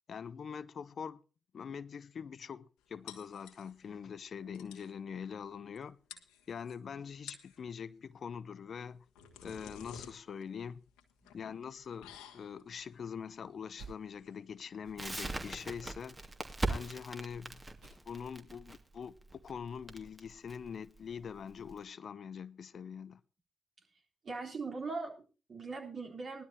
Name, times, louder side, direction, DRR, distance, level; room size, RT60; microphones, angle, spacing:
voice 1, 0.1-1.2 1.5-6.0 6.5-9.0 9.4-10.8 11.3-16.2 16.7-17.6 18.1-23.2, left 7 dB, 60° left, 0.6 m, -44 dB
sound 1, 3.1-3.9 4.3-4.4 4.5-4.9 5.8-5.9 6.1-6.8 7.1-7.6 8.8-15.4, left 8 dB, 90° left, 1.3 m, -53 dB
sound 2, 13.7-14.0 14.7-15.1 15.7-16.0 16.7-17.0 17.7-18.0 18.7-18.8, right 5 dB, 80° right, 6.9 m, -53 dB
Crackle, 15.0-21.8, right 2 dB, 30° right, 2.1 m, -40 dB
voice 2, 24.2-26.4, right 4 dB, 60° right, 3.7 m, -40 dB
19.0 x 12.5 x 2.8 m
hypercardioid pair, 40°, 0 cm